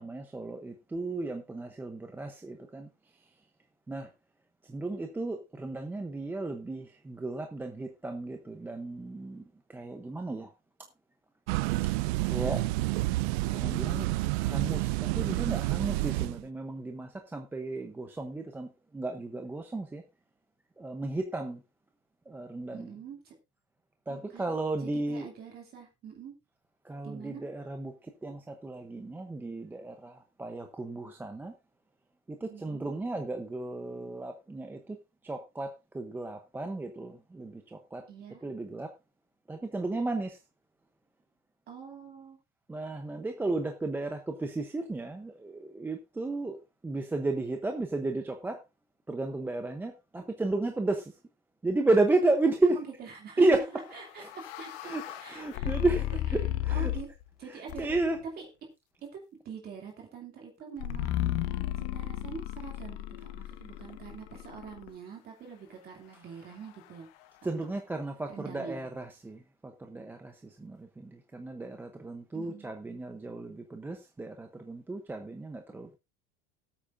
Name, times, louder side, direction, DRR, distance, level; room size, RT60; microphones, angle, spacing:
voice 1, 0.0-2.9 3.9-4.1 4.6-9.4 9.7-10.5 12.2-12.6 13.5-14.1 14.4-20.0 20.8-21.6 22.3-23.0 24.1-25.3 26.8-31.5 32.3-35.0 35.2-38.0 38.4-38.9 39.5-40.4 42.7-46.6 46.8-48.6 49.1-51.1 51.6-52.8 53.4-53.8 54.2-54.5 54.8-56.9 57.4-58.2 66.1-66.3 67.4-76.0, right 2 dB, 5° right, 0.7 m, -33 dB
sound 1, 11.5-16.4, right 20 dB, 80° right, 0.5 m, -29 dB
voice 2, 22.7-23.4 24.1-24.5 24.8-26.4 27.0-27.4 32.5-32.9 38.1-38.5 41.7-42.4 52.7-53.6 53.9-55.7 56.1-56.2 56.7-57.1 57.4-57.9 58.4-58.5 59.0-67.1 67.4-67.7 68.3-68.8 72.3-72.7, right 6 dB, 30° right, 2.6 m, -45 dB
sound 2, 53.9-57.2 57.7-58.2 60.8-64.9, left 13 dB, 65° left, 1.2 m, -34 dB
17.5 x 8.7 x 2.5 m
cardioid pair, 175°, 32 cm